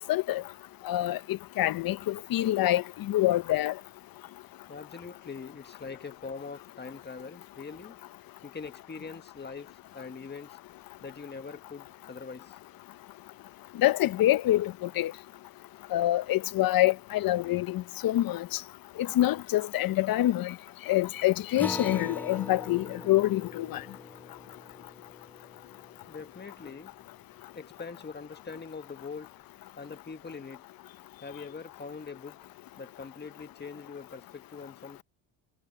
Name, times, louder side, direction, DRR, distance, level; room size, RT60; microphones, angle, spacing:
voice 1, 0.1-0.4 0.8-3.7 13.8-15.1 15.9-18.6 19.0-20.5 20.9-23.8, left 15 dB, 50° left, 0.9 m, -26 dB
voice 2, 4.7-8.0 8.4-10.6 11.0-12.6 26.1-26.9 27.5-29.3 29.8-30.7 31.2-32.4 32.8-35.0, left 5 dB, 25° left, 1.7 m, -43 dB
Acoustic guitar, 21.6-26.5, left 2 dB, 5° left, 0.3 m, -41 dB
supercardioid pair, 85°, 44 cm